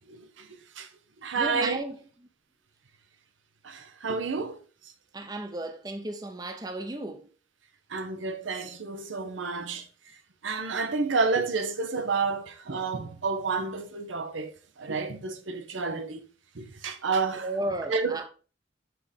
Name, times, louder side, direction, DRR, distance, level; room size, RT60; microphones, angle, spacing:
voice 1, 0.1-0.5 0.8-0.9 1.2-1.8 3.6-4.6 7.9-9.8 10.4-16.2 16.6-17.5 17.9-18.3, right 4 dB, 90° right, 0.8 m, -30 dB
voice 2, 1.3-2.0 5.1-7.3 17.4-18.3, right 2 dB, 20° right, 0.6 m, -34 dB
6.1 x 3.6 x 4.8 m
head